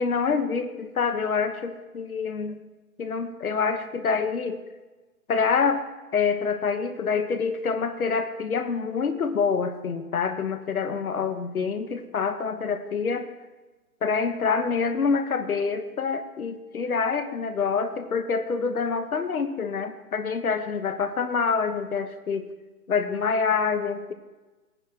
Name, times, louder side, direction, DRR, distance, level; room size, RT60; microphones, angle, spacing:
voice 1, 0.0-2.6 3.0-4.6 5.3-5.8 6.1-13.3 14.0-22.5 22.9-24.1, left 5 dB, 70° left, 7 dB, 1.4 m, -26 dB
18.5 x 9.7 x 3.1 m, 1.2 s
hypercardioid pair, 175°, 44 cm